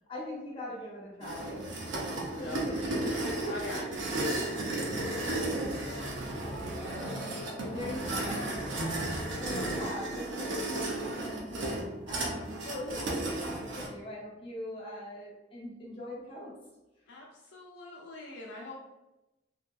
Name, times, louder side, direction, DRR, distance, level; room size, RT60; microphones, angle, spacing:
voice 1, 0.1-1.6 2.0-4.0 6.3-16.5, left 1 dB, 30° left, -7 dB, 0.9 m, -42 dB
elevator moving scraping metal sliding, 1.2-13.9, right 1 dB, 90° right, 0.5 m, -34 dB
voice 2, 2.3-7.1 7.4-7.8 17.1-18.8, left 2 dB, 70° left, -2 dB, 0.4 m, -46 dB
2.6 x 2.2 x 2.2 m, 0.97 s
head